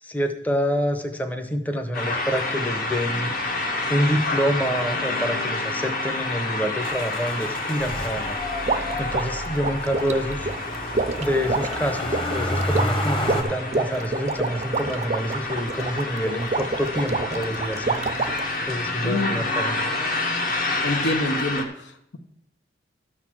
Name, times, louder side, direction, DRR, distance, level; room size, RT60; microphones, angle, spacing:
voice 1, 0.0-3.3 3.9-8.4 9.0-10.5 11.2-18.0 18.7-19.8, equal, 10° left, 6 dB, 0.7 m, -27 dB
sound 1, 1.9-21.7, left 2 dB, 50° left, 1.3 m, -29 dB
Motor vehicle (road), 6.8-13.4, left 1 dB, 30° left, 1.3 m, -30 dB
sound 2, 8.7-18.6, right 3 dB, 35° right, 0.5 m, -28 dB
voice 2, 19.0-19.5 20.8-22.2, left 1 dB, 80° left, 6 dB, 1.1 m, -27 dB
12.5 x 4.1 x 7.5 m, 0.78 s
head